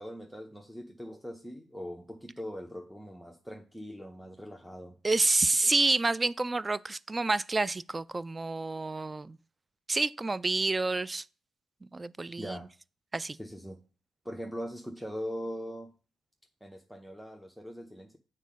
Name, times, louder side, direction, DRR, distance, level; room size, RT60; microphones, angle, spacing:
voice 1, 0.0-5.0 5.6-5.7 12.4-12.7 13.3-13.8 14.2-15.9 16.6-18.2, equal, ahead, 0.8 m, -41 dB
voice 2, 5.0-9.4 9.9-11.2 11.9-12.6 13.1-13.4, right 3 dB, 25° right, 0.3 m, -28 dB
7.3 x 4.2 x 5.2 m
supercardioid pair, 70°, 0 cm